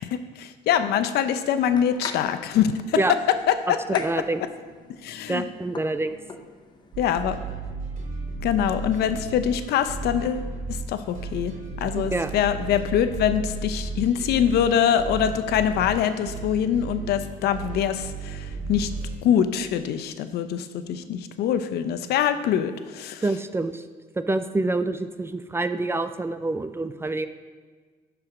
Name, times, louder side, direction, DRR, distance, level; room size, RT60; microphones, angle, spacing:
voice 1, 0.4-3.2 3.5-4.0 5.0-5.5 7.0-7.4 8.4-11.5 11.8-18.9 19.2-23.2, left 9 dB, 75° left, 10 dB, 0.6 m, -24 dB
sound 1, 1.4-7.0, left 4 dB, 25° left, 0.8 m, -42 dB
voice 2, 4.0-4.4 5.3-6.2 12.0-12.4 23.2-23.8 24.1-27.3, right 2 dB, 15° right, 11 dB, 0.4 m, -26 dB
sound 2, 6.9-19.2, right 3 dB, 50° right, 2.6 m, -34 dB
12.0 x 4.8 x 4.9 m, 1.5 s
cardioid pair, 110°, 17 cm